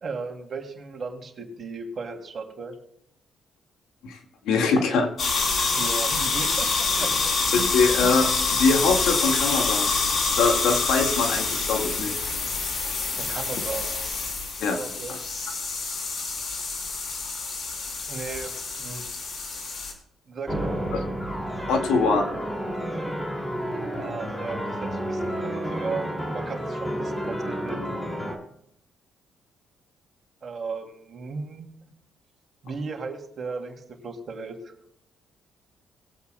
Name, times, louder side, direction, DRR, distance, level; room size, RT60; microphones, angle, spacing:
voice 1, 0.0-2.7 5.7-7.7 13.2-13.9 14.8-15.2 18.1-18.5 18.8-19.0 20.3-20.8 24.0-27.8 30.4-31.7 32.6-34.7, right 4 dB, 45° right, 3 dB, 2.8 m, -36 dB
voice 2, 4.5-5.1 5.5-5.7 7.5-9.9 10.4-12.2 14.6-14.8 20.9-21.3 21.7-22.3, left 4 dB, 85° left, 2 dB, 2.0 m, -23 dB
sound 1, 5.2-19.9, left 4 dB, 55° left, 3.3 m, -27 dB
sound 2, 20.5-28.4, equal, 10° left, 2.7 m, -30 dB
21.5 x 8.4 x 2.3 m, 0.73 s
cardioid pair, 90°, 0 cm